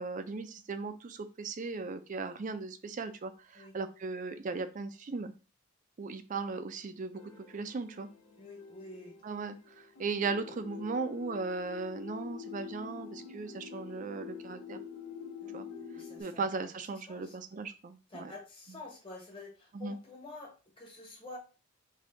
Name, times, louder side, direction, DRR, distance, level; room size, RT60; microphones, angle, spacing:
voice 1, 0.0-5.3 6.0-7.2 7.5-8.1 9.2-14.8 15.5-15.7 16.2-18.3 19.7-20.0, right 4 dB, 35° right, 10 dB, 0.4 m, -37 dB
sound 1, 7.1-16.2, left 7 dB, 75° left, 1.0 m, -47 dB
voice 2, 8.4-9.2 15.4-16.5 17.1-17.3 18.1-21.4, left 2 dB, 25° left, -1 dB, 1.2 m, -48 dB
3.5 x 2.7 x 3.8 m, 0.33 s
head